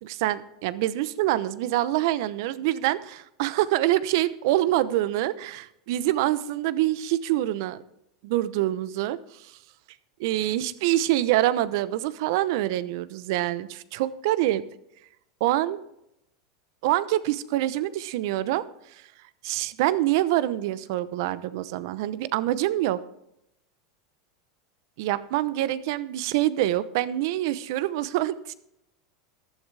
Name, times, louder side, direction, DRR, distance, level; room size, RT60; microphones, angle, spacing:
voice 1, 0.0-7.8 8.2-9.5 10.2-14.6 15.4-15.8 16.8-18.6 18.9-19.0 19.4-23.0 25.0-28.5, right 14 dB, 65° right, 16 dB, 0.8 m, -25 dB
15.0 x 12.0 x 3.5 m, 0.80 s
hypercardioid pair, 100°, 2 cm